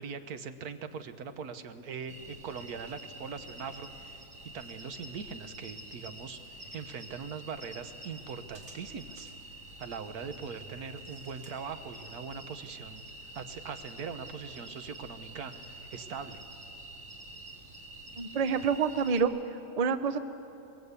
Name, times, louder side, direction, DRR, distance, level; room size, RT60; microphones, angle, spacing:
voice 1, 0.0-4.2 4.5-6.4 6.7-9.3 9.8-13.0 13.3-16.4, right 6 dB, 85° right, 10 dB, 1.5 m, -41 dB
sound 1, 2.1-19.2, right 1 dB, 60° right, 2.7 m, -47 dB
voice 2, 18.2-19.3 19.8-20.2, right 6 dB, 35° right, 11 dB, 0.7 m, -27 dB
22.0 x 20.5 x 8.2 m, 2.8 s
omnidirectional pair, 1.5 m